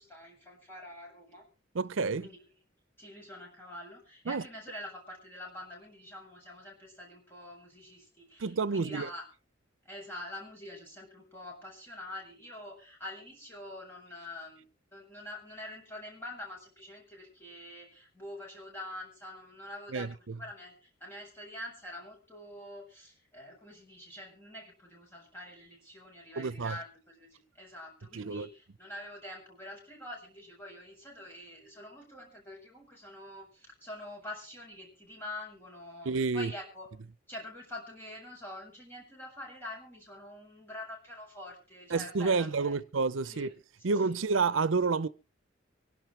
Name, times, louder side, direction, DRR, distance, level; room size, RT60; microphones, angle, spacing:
voice 1, 0.0-1.5 2.2-2.4 3.0-9.3 9.8-14.7 14.9-36.9 37.3-42.8 43.2-43.5 43.8-44.2, left 1 dB, 10° left, 7.9 m, -46 dB
voice 2, 1.7-2.3 4.3-4.4 8.4-9.1 19.9-20.3 26.4-26.8 28.1-28.5 36.1-36.5 41.9-43.5 43.8-45.1, right 4 dB, 85° right, 0.7 m, -29 dB
25.0 x 12.0 x 3.3 m
head